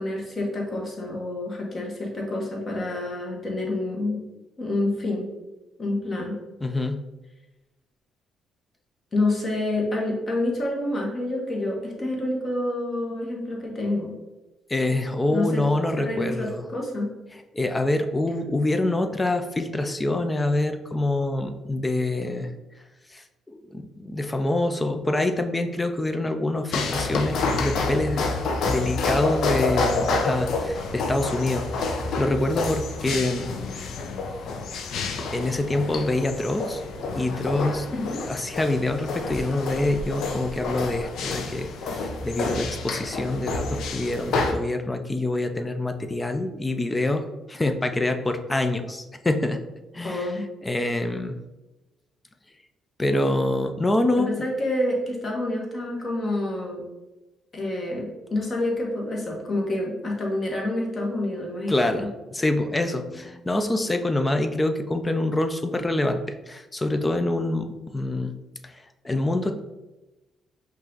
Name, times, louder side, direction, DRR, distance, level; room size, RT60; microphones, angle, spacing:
voice 1, 0.0-4.2 4.6-5.3 5.8-6.4 9.1-14.1 15.3-15.6 16.0-17.1 37.9-38.2 50.0-50.4 54.2-56.8 57.5-62.1, left 1 dB, 35° left, -1 dB, 1.2 m, -28 dB
voice 2, 6.6-7.0 12.0-12.1 14.7-16.6 17.5-22.5 23.1-23.2 23.5-28.3 28.7-33.5 35.3-36.8 37.1-37.9 38.2-49.6 49.9-50.3 50.6-51.4 53.0-54.3 61.7-68.3 68.6-69.6, left 2 dB, 15° left, 7 dB, 0.4 m, -26 dB
sound 1, 26.7-44.5, left 3 dB, 70° left, 0.5 m, -28 dB
5.3 x 2.5 x 3.8 m, 1.1 s
cardioid pair, 115°, 0 cm